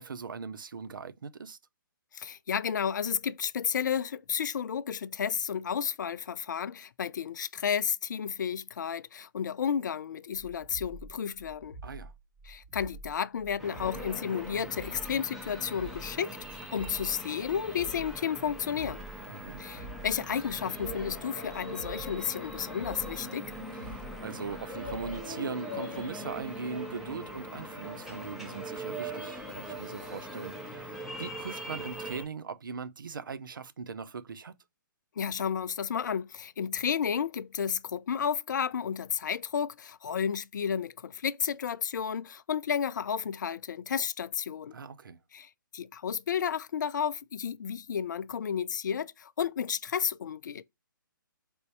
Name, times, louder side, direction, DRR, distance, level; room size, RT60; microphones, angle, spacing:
voice 1, 0.0-1.6 11.8-12.1 19.3-19.6 23.9-34.5 44.7-45.2, right 5 dB, 70° right, 0.5 m, -40 dB
voice 2, 2.1-11.8 12.5-19.0 19.6-23.5 35.2-44.7 45.3-50.6, left 7 dB, 60° left, 0.4 m, -32 dB
sound 1, 10.3-25.3, right 3 dB, 30° right, 1.2 m, -47 dB
sound 2, 13.6-32.2, right 1 dB, ahead, 0.9 m, -41 dB
3.4 x 2.6 x 4.4 m
figure-of-eight pair, 130°, 11 cm